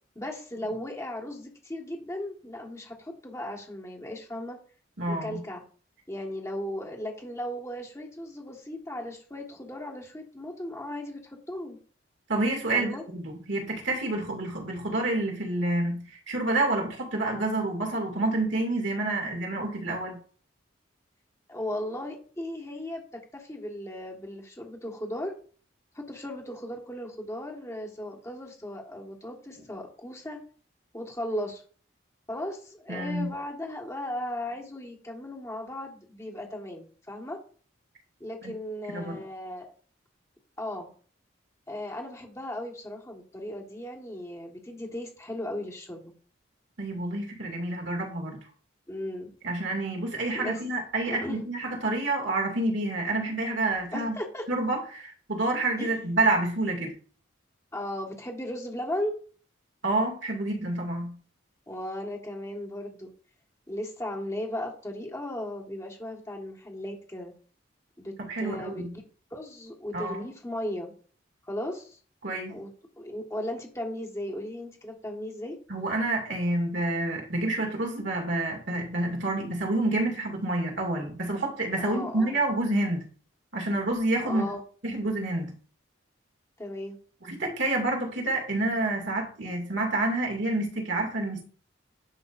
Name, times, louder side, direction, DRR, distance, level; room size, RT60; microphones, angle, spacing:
voice 1, 0.1-4.6 5.1-5.6 6.1-11.8 12.7-13.0 21.5-25.3 25.9-30.4 30.9-31.6 32.3-37.4 38.2-39.7 40.6-40.9 41.7-46.1 48.9-49.3 50.3-50.6 51.1-51.4 53.9-54.5 55.8-56.0 57.7-59.1 61.7-63.1 63.7-67.3 68.0-69.0 69.3-70.9 71.4-72.0 72.5-75.6 81.8-82.3 84.2-84.6 86.6-87.0, left 1 dB, 15° left, 1.6 m, -36 dB
voice 2, 5.0-5.4 12.3-20.2 32.9-33.3 38.4-38.5 38.9-39.2 46.8-48.4 49.4-54.2 54.5-56.9 59.8-61.2 68.2-68.9 69.9-70.2 72.2-72.6 75.7-83.1 83.5-84.5 84.8-85.6 87.2-91.4, right 2 dB, 65° right, 2.4 m, -28 dB
10.5 x 5.7 x 2.6 m
head